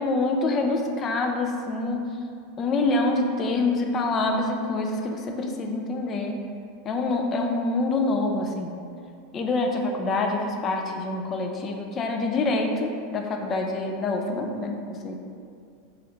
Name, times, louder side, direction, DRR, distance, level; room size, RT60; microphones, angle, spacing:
voice 1, 0.0-2.1 2.6-6.4 6.8-8.8 9.3-15.1, left 2 dB, 30° left, 3 dB, 0.3 m, -26 dB
3.1 x 2.4 x 2.9 m, 2.4 s
hypercardioid pair, 115°, 0 cm